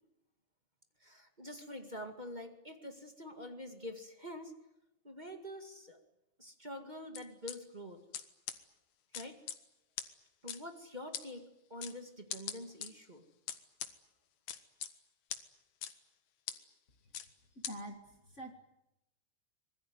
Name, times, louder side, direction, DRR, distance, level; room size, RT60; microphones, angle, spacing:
voice 1, 1.0-4.5 5.0-6.0 6.4-8.0 9.1-9.4 10.4-13.2, left 1 dB, 20° right, 4 dB, 1.5 m, -46 dB
sound 1, 7.1-7.5 8.1-8.2 8.5-8.6 9.1-9.6 10.0-10.1 10.5-10.6 11.1-11.2 11.8-11.9 12.3-12.9 13.5-13.9 14.5-14.9 15.3-15.4 15.8-15.9 16.5-16.6 17.1-17.3 17.6-17.7, left 10 dB, 65° left, 2.7 m, -39 dB
voice 2, 17.6-18.5, right 1 dB, 30° left, 3 dB, 1.6 m, -46 dB
25.5 x 21.0 x 9.5 m, 0.92 s
omnidirectional pair, 3.7 m